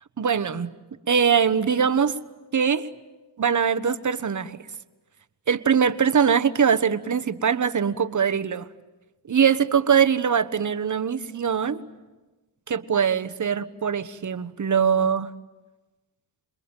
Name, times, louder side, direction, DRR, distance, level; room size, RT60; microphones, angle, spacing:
voice 1, 0.2-0.7 1.1-2.2 2.5-2.9 3.4-4.6 5.5-8.6 9.3-11.8 12.7-15.3, right 7 dB, 40° right, 11 dB, 1.3 m, -22 dB
28.0 x 21.5 x 9.0 m, 1.2 s
supercardioid pair, 55°, 47 cm